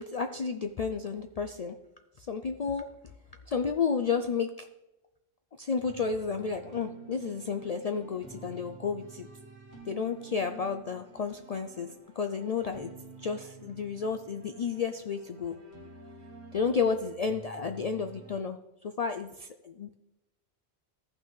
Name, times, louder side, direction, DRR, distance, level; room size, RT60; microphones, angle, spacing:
voice 1, 0.0-1.8 2.2-2.9 3.5-4.7 5.6-9.3 9.9-12.9 13.2-15.6 16.5-18.6 18.8-19.9, left 5 dB, 55° left, 7 dB, 0.4 m, -32 dB
sound 1, 5.8-18.4, right 4 dB, 70° right, 1.6 m, -50 dB
14.5 x 5.7 x 3.2 m, 0.93 s
omnidirectional pair, 1.1 m